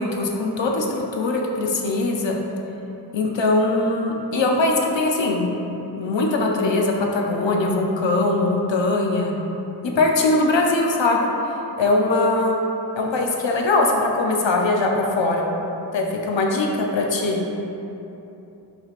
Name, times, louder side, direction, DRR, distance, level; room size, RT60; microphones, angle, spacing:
voice 1, 0.0-2.4 3.1-5.5 6.0-9.3 10.0-11.3 11.8-12.6 13.0-15.5 15.9-17.4, left 2 dB, 90° left, 0 dB, 0.6 m, -21 dB
5.9 x 3.3 x 2.4 m, 3.0 s
wide cardioid pair, 45°, 43 cm